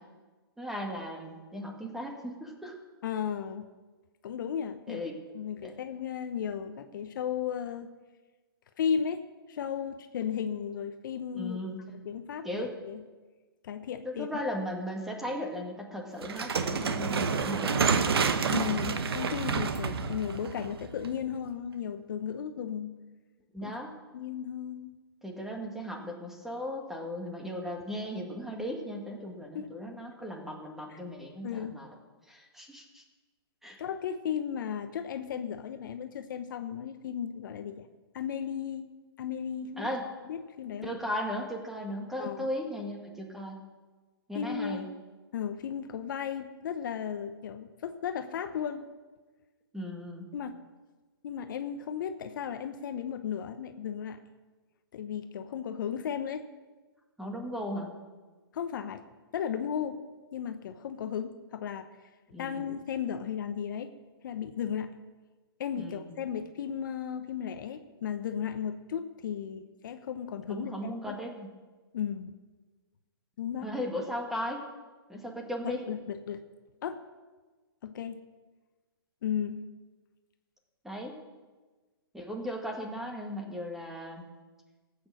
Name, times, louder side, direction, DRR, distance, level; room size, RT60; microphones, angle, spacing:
voice 1, 0.6-2.7 4.9-5.1 5.6-5.7 11.3-11.8 12.4-12.7 14.0-18.0 23.5-23.9 25.2-31.9 32.3-33.0 33.6-33.8 39.8-40.0 40.8-43.6 44.3-44.9 49.7-50.3 57.2-57.9 62.3-62.6 65.8-66.1 70.5-71.5 73.6-74.6 75.1-75.8 80.8-81.2 82.1-84.2, equal, 5° right, 1 dB, 1.8 m, -37 dB
voice 2, 3.0-3.7 4.2-7.9 8.8-9.2 9.5-11.6 11.9-13.0 13.6-14.3 18.5-22.9 23.6-23.7 24.1-24.9 29.5-29.7 30.9-31.0 31.4-31.8 33.8-37.9 38.1-38.9 39.2-39.9 40.3-40.9 42.2-42.5 44.3-44.9 45.3-48.8 50.3-50.5 51.2-54.2 54.9-56.5 58.5-59.0 59.3-60.0 60.3-61.9 62.4-63.9 64.2-64.9 65.6-71.2 71.9-72.3 73.4-73.7 75.8-76.4 76.8-77.0 77.8-78.2 79.2-79.6, left 8 dB, 55° left, 9 dB, 0.9 m, -35 dB
sound 1, 16.2-21.3, right 5 dB, 75° right, 1.3 m, -29 dB
15.0 x 8.6 x 6.5 m, 1.3 s
hypercardioid pair, 145°, 13 cm